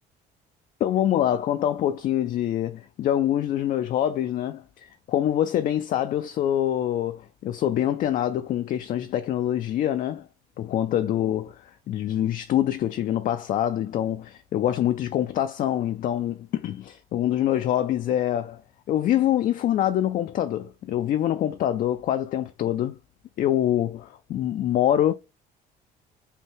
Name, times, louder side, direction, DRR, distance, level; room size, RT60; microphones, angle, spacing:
voice 1, 0.8-10.3 10.6-18.6 18.9-22.9 23.4-25.1, left 11 dB, 55° left, 0.4 m, -25 dB
5.4 x 2.2 x 3.4 m
cardioid pair, 110°, 17 cm